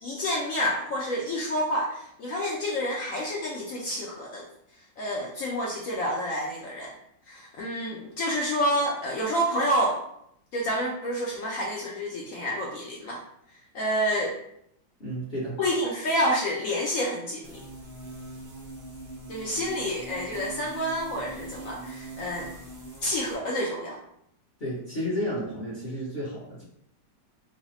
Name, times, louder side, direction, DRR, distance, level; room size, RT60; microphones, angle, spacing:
voice 1, 0.0-4.5 5.0-6.9 7.3-10.0 10.5-13.2 13.7-14.4 15.6-17.6 19.3-22.5 23.0-24.0, equal, 80° left, -2 dB, 0.7 m, -28 dB
voice 2, 15.0-15.6 24.6-26.6, equal, 45° left, -8 dB, 0.8 m, -32 dB
sound 1, 17.4-23.3, right 2 dB, 45° right, 0.7 m, -42 dB
3.2 x 2.1 x 4.0 m, 0.74 s
omnidirectional pair, 2.0 m